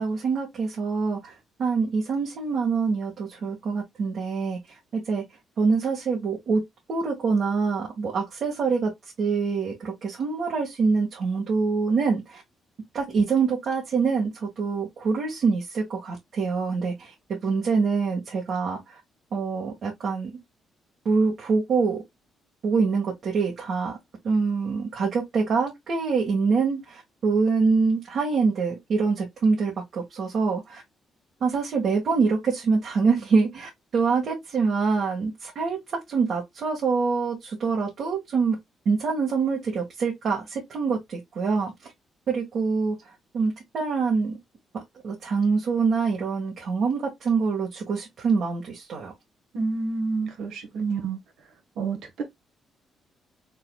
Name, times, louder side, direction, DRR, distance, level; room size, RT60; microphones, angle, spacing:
voice 1, 0.0-1.3 1.6-4.6 4.9-5.2 5.6-6.6 6.9-8.9 9.2-12.4 12.9-19.0 19.3-20.3 21.0-22.0 22.6-24.0 24.2-30.8 31.4-35.8 36.1-38.6 38.8-41.9 42.3-43.0 43.3-44.4 45.0-49.1, right 4 dB, 60° right, 1.6 m, -25 dB
voice 2, 49.5-51.2 51.8-52.2, right 4 dB, 80° right, 1.4 m, -28 dB
4.1 x 3.8 x 2.3 m
cardioid pair, 90°, 0 cm